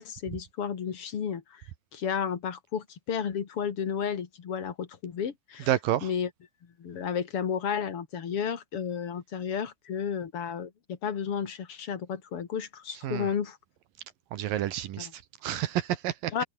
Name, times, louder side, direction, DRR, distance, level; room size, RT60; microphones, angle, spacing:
voice 1, 0.0-1.7 1.9-5.7 6.0-6.3 6.8-13.6 15.0-15.1 16.3-16.4, left 7 dB, 45° left, 2.2 m, -32 dB
voice 2, 5.7-6.1 13.0-13.3 14.3-16.4, right 12 dB, 70° right, 2.3 m, -30 dB
omnidirectional pair, 5.2 m